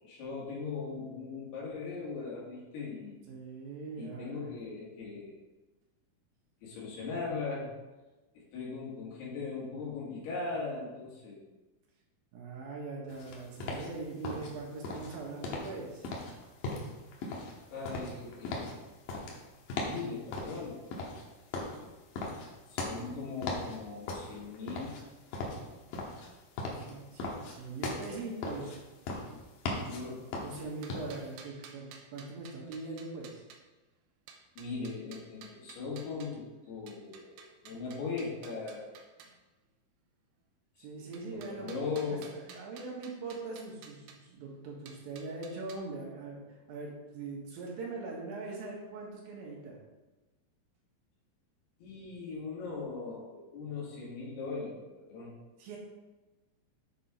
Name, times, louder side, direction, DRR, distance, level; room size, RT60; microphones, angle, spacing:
voice 1, 0.0-3.2 4.0-5.4 6.6-7.7 8.3-11.4 13.6-13.7 17.7-18.8 19.8-21.2 22.7-25.0 29.9-30.2 34.6-38.9 41.0-42.2 51.8-55.3, left 4 dB, 85° left, -5 dB, 4.0 m, -39 dB
voice 2, 3.3-4.5 12.3-16.1 26.7-28.8 30.4-33.4 40.8-41.8 42.1-49.8 55.6-55.8, right 3 dB, 70° right, -2 dB, 3.3 m, -42 dB
sound 1, 13.1-31.3, left 2 dB, 70° left, 2.7 m, -39 dB
sound 2, 30.6-33.6 34.3-36.4 36.9-39.4 41.1-44.2 44.9-45.8, right 6 dB, 90° right, 2.8 m, -53 dB
8.5 x 6.1 x 4.4 m, 1.1 s
omnidirectional pair, 4.5 m